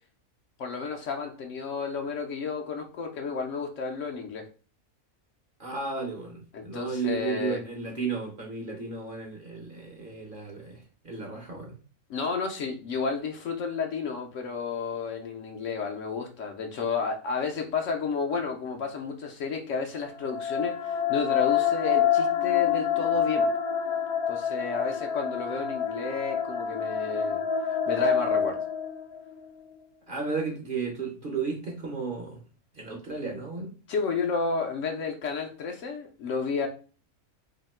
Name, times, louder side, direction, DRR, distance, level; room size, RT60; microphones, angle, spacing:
voice 1, 0.6-4.5 6.5-7.6 12.1-23.5 24.3-27.4 27.9-28.6 33.9-36.7, left 5 dB, 65° left, 3 dB, 0.9 m, -31 dB
voice 2, 5.6-11.7 30.1-32.4 32.7-33.7, right 4 dB, 45° right, 0 dB, 0.8 m, -34 dB
sound 1, 20.1-29.3, left 7 dB, 85° left, 1.1 m, -27 dB
2.8 x 2.7 x 4.2 m, 0.39 s
omnidirectional pair, 1.5 m